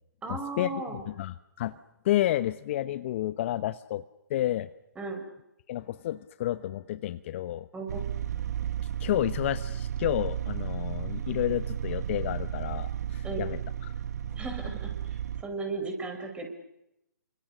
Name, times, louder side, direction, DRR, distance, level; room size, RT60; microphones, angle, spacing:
voice 1, 0.2-1.0 5.0-5.3 7.7-8.0 13.2-13.5 14.4-16.5, right 3 dB, 10° right, 5 dB, 5.7 m, -36 dB
voice 2, 1.2-1.8 2.0-4.0 4.3-4.7 5.7-7.7 9.0-13.6 13.8-13.9, left 13 dB, 40° left, 13 dB, 0.9 m, -30 dB
sound 1, 7.9-15.4, right 10 dB, 55° right, 1.2 m, -33 dB
29.0 x 25.5 x 6.7 m, 0.84 s
figure-of-eight pair, 135°, 10 cm